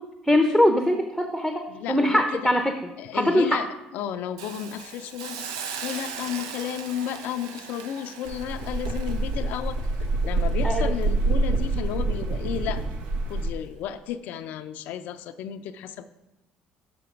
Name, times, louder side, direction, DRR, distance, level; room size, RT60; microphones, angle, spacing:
voice 1, 0.2-2.7 3.1-3.6 10.6-10.9, left 1 dB, ahead, 6 dB, 0.8 m, -22 dB
voice 2, 1.7-2.5 3.0-9.8 10.2-12.8 13.3-16.1, left 9 dB, 70° left, 10 dB, 0.4 m, -33 dB
Hiss, 4.4-11.4 11.8-12.0, right 6 dB, 90° right, 0.6 m, -39 dB
sound 1, 8.2-13.5, right 2 dB, 70° right, 0.9 m, -26 dB
6.8 x 5.9 x 5.1 m, 0.94 s
hypercardioid pair, 65°, 3 cm